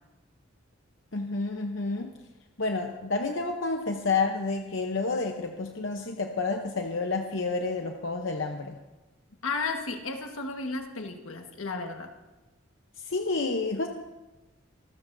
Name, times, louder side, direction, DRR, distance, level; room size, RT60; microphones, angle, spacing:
voice 1, 1.1-2.2 2.6-8.8 13.0-13.9, left 3 dB, 65° left, 4 dB, 0.8 m, -29 dB
voice 2, 9.4-12.1, left 3 dB, 85° left, 4 dB, 1.5 m, -33 dB
26.5 x 13.5 x 2.7 m, 1.1 s
head